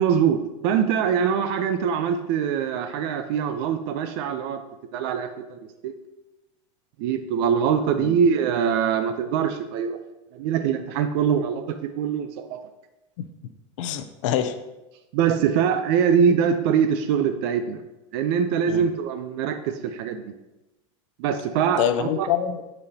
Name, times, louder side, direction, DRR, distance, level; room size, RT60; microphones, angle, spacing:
voice 1, 0.0-4.6 4.9-5.9 7.0-10.0 10.3-12.6 15.1-17.8 18.1-20.2 21.2-22.3, right 7 dB, 55° right, 9 dB, 0.5 m, -23 dB
voice 2, 13.8-14.5 18.7-18.8 21.8-22.6, left 10 dB, 70° left, 10 dB, 0.5 m, -25 dB
9.5 x 4.2 x 2.8 m, 1.0 s
supercardioid pair, 160°, 17 cm